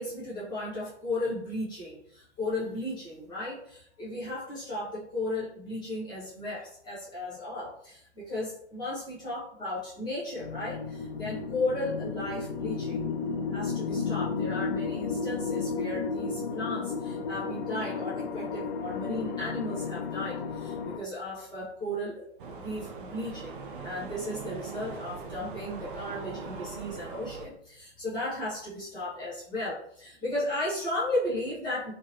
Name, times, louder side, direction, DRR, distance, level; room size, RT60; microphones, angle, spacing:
voice 1, 0.0-9.0 9.2-13.0 13.5-22.2 22.6-31.9, left 1 dB, 10° left, -8 dB, 1.0 m, -35 dB
sound 1, 10.4-21.0, left 5 dB, 55° left, 0.5 m, -33 dB
sound 2, 22.4-27.5, right 4 dB, 50° right, 0.6 m, -41 dB
2.9 x 2.5 x 2.8 m, 0.70 s
figure-of-eight pair, 115°, 35 cm